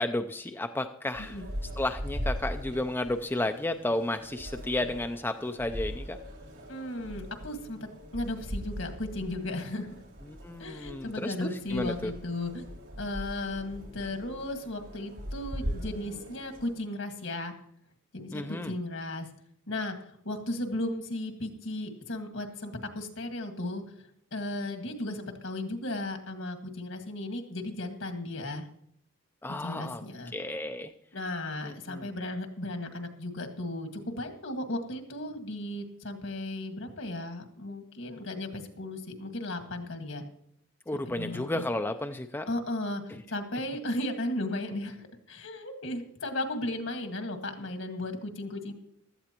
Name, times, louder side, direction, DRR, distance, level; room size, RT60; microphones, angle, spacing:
voice 1, 0.0-1.4 1.8-6.2 10.2-12.1 18.3-18.7 29.4-30.0 30.3-30.9 31.6-32.1 40.9-42.5 43.1-43.2, left 1 dB, 10° left, 6 dB, 0.4 m, -32 dB
sound 1, 1.1-16.7, equal, 70° right, 2.9 m, -40 dB
voice 2, 6.7-7.8 8.1-9.9 10.6-12.7 13.0-17.5 18.1-19.3 19.7-23.8 24.3-28.7 29.6-30.3 31.1-40.2 41.0-41.6 42.5-43.0 43.3-48.7, left 1 dB, 70° left, 5 dB, 1.7 m, -35 dB
16.0 x 12.5 x 2.9 m, 0.70 s
head